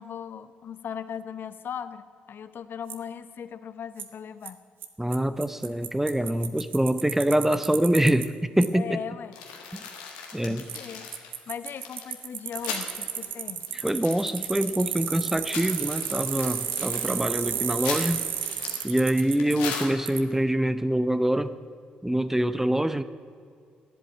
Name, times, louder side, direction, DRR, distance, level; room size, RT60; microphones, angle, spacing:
voice 1, 0.0-4.6 8.7-9.4 10.4-11.1 11.5-13.6, left 8 dB, 55° left, 13 dB, 0.7 m, -38 dB
Bicycle, 2.9-3.0 4.0-4.1 4.5-4.6 4.8-4.9 5.1-5.2 5.4-8.3 8.6-8.7 10.7-10.8 11.1-19.5 20.1-20.2, right 8 dB, 60° right, 0.9 m, -32 dB
voice 2, 5.0-9.0 10.3-10.6 13.7-18.2 18.8-21.6 22.0-23.0, right 1 dB, 10° right, 13 dB, 0.6 m, -25 dB
sound 1, 9.3-12.9 13.2-13.3 13.6-14.9 15.3-20.3, left 6 dB, 80° left, 1.5 m, -38 dB
11.5 x 7.8 x 9.0 m, 2.3 s
hypercardioid pair, 45°, 4 cm